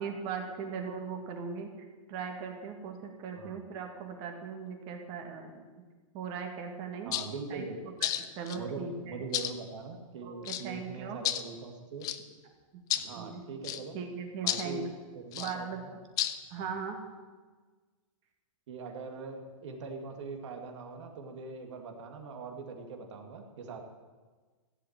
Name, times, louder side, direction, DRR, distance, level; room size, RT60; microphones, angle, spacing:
voice 1, 0.0-5.6 6.1-7.1 7.5-7.7 8.0-8.1 8.4-9.3 10.2-11.2 13.1-13.4 13.9-14.8 15.4-15.8 16.5-17.0, right 6 dB, 30° right, 4 dB, 2.0 m, -39 dB
voice 2, 7.0-7.9 8.5-12.1 13.0-14.0 14.4-16.0 16.5-16.7 18.7-23.8, right 4 dB, 60° right, 4 dB, 2.4 m, -42 dB
sound 1, 7.1-7.3 8.0-8.6 9.3-9.5 10.5-10.7 11.3-11.4 12.0-12.2 12.9-13.1 13.6-13.8 14.5-14.7 15.3-15.5 16.2-16.4, left 12 dB, 20° left, 0.6 m, -31 dB
15.0 x 8.1 x 9.0 m, 1.4 s
hypercardioid pair, 160°, 18 cm